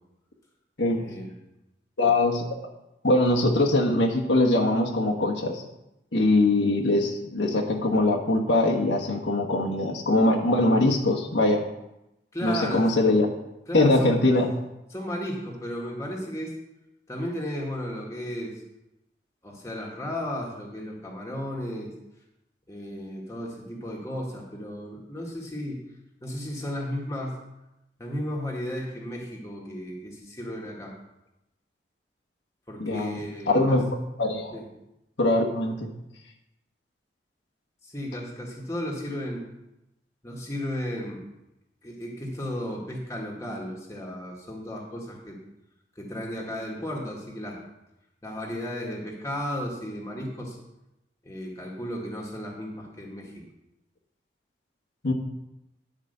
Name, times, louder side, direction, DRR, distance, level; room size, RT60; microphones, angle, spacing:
voice 1, 1.0-1.4 12.3-12.9 13.7-14.2 14.9-16.5 17.1-18.6 19.4-21.9 22.7-25.8 26.2-27.4 28.0-30.9 32.7-33.8 34.5-34.7 37.8-39.4 40.2-41.2 41.8-45.4 46.0-47.6 48.2-50.6 51.2-53.4, equal, 15° left, -2 dB, 1.7 m, -34 dB
voice 2, 2.0-2.7 3.0-5.6 6.1-11.6 12.4-13.3 13.7-14.5 32.8-33.2 33.5-33.8 34.2-34.5 35.2-35.9 55.0-55.1, left 2 dB, 75° left, -1 dB, 1.4 m, -22 dB
10.5 x 5.1 x 6.7 m, 0.90 s
head